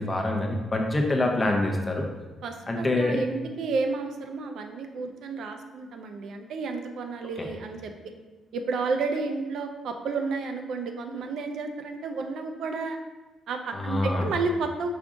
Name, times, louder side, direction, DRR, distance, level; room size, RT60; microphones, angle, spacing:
voice 1, 0.0-2.1 2.7-3.2 7.4-7.5 13.7-14.3, left 2 dB, 20° left, 1 dB, 0.6 m, -25 dB
voice 2, 2.4-7.9 8.5-13.0 13.5-14.9, right 4 dB, 70° right, 5 dB, 0.5 m, -31 dB
5.1 x 2.4 x 3.7 m, 1.2 s
cardioid pair, 130°, 0 cm